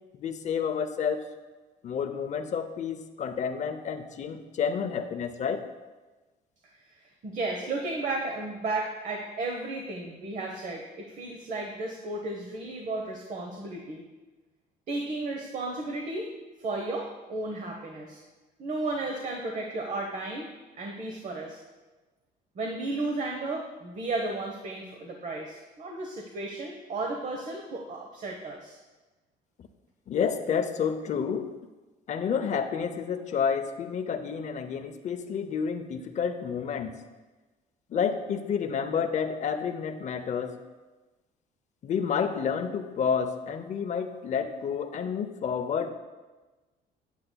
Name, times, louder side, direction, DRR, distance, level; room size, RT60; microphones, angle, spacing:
voice 1, 0.1-1.3 1.8-5.6 30.1-31.5 32.1-37.0 37.9-40.6 41.8-45.9, left 7 dB, 45° left, 8 dB, 0.7 m, -30 dB
voice 2, 7.2-14.0 14.9-16.3 16.6-18.2 18.6-20.5 20.8-21.6 22.5-28.8, right 2 dB, 45° right, 1 dB, 1.0 m, -34 dB
8.9 x 8.7 x 2.3 m, 1.2 s
cardioid pair, 110°, 17 cm